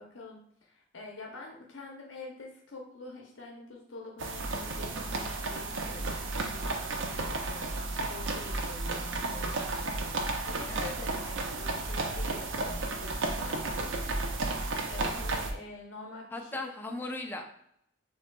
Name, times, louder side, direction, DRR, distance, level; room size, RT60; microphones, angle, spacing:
voice 1, 0.0-7.8 8.1-14.2 14.4-16.5, left 3 dB, 85° left, 0 dB, 0.7 m, -46 dB
sound 1, 4.2-15.5, right 2 dB, 85° right, 0.5 m, -33 dB
voice 2, 16.3-17.4, left 2 dB, 10° left, 2 dB, 0.5 m, -37 dB
6.3 x 2.7 x 2.2 m, 0.73 s
head